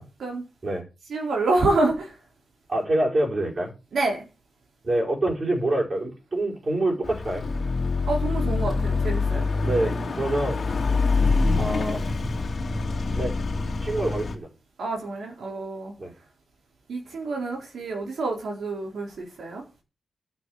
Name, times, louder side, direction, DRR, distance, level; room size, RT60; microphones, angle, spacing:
voice 1, 1.1-2.1 3.9-4.2 8.1-9.5 14.8-15.9 16.9-19.6, right 2 dB, 70° right, 0 dB, 4.4 m, -27 dB
voice 2, 2.7-3.7 4.8-7.5 9.6-10.6 11.6-12.0 13.2-13.3 13.8-14.5 16.0-16.1, right 1 dB, 30° right, -2 dB, 5.4 m, -26 dB
Car passing by / Accelerating revving vroom, 7.0-14.4, left 3 dB, 40° left, 2.4 m, -25 dB
12.0 x 7.7 x 6.5 m, 0.30 s
wide cardioid pair, 170°, 0 cm